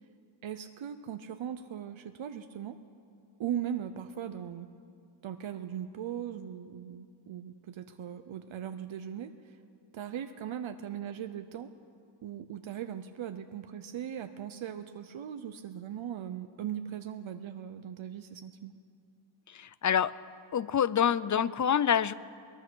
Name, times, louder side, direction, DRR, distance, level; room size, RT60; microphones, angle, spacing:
voice 1, 0.4-2.8 3.4-4.7 5.2-9.6 9.9-11.7 12.2-18.7, right 9 dB, 75° right, 8 dB, 0.8 m, -39 dB
voice 2, 19.5-20.2 20.5-22.1, left 8 dB, 40° left, 18 dB, 0.4 m, -27 dB
22.5 x 19.5 x 6.3 m, 2.4 s
wide cardioid pair, 150°, 47 cm